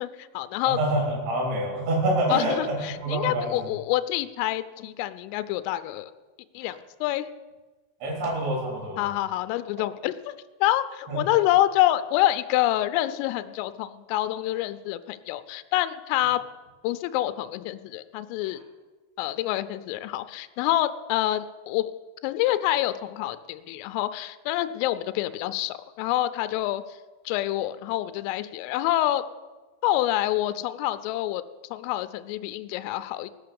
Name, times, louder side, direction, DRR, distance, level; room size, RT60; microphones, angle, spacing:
voice 1, 0.0-0.8 2.3-6.1 6.5-7.3 9.0-10.3 10.6-16.4 16.8-18.6 19.2-21.9 22.2-26.8 27.3-29.2 29.8-31.4 31.7-33.3, left 14 dB, 85° left, 12 dB, 3.2 m, -27 dB
voice 2, 0.7-3.5 8.0-9.0 11.1-11.2, right 1 dB, 65° right, -1 dB, 5.6 m, -26 dB
19.0 x 6.6 x 6.9 m, 1.2 s
omnidirectional pair, 5.8 m